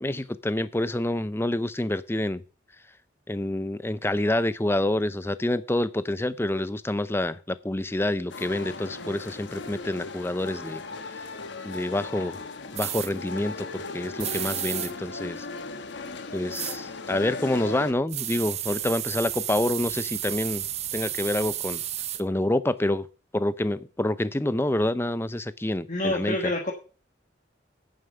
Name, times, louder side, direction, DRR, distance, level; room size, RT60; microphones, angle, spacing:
voice 1, 0.0-2.4 3.3-10.8 11.2-11.3 11.6-12.4 12.7-15.5 16.3-20.6 20.9-21.8 22.2-23.0 23.3-26.4, left 1 dB, 15° left, 0.5 m, -27 dB
sound 1, 8.3-17.9, left 3 dB, 80° left, 1.3 m, -37 dB
sound 2, 12.8-13.1 14.2-14.9 16.5-16.8 18.1-22.2, right 12 dB, 35° right, 0.6 m, -32 dB
voice 2, 25.9-26.7, left 1 dB, 40° left, 1.5 m, -27 dB
9.2 x 7.3 x 6.5 m
head